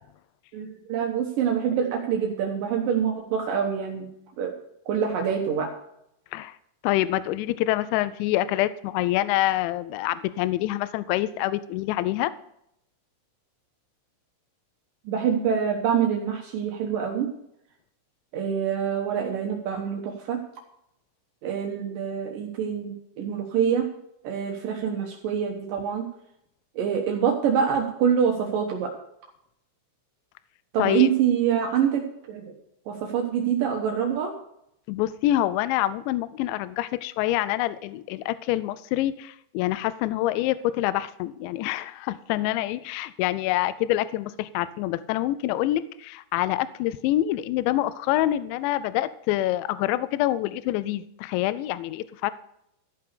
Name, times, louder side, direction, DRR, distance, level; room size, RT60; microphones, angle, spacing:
voice 1, 0.5-4.1 4.4-4.5 4.9-5.7 15.1-17.3 18.3-20.4 21.4-23.9 24.2-26.1 26.8-28.9 30.7-32.5 32.9-34.3, right 8 dB, 80° right, 1 dB, 1.9 m, -25 dB
voice 2, 6.8-12.3 30.8-31.1 34.9-52.3, left 14 dB, 85° left, 15 dB, 2.6 m, -26 dB
14.5 x 5.9 x 6.7 m, 0.76 s
omnidirectional pair, 5.8 m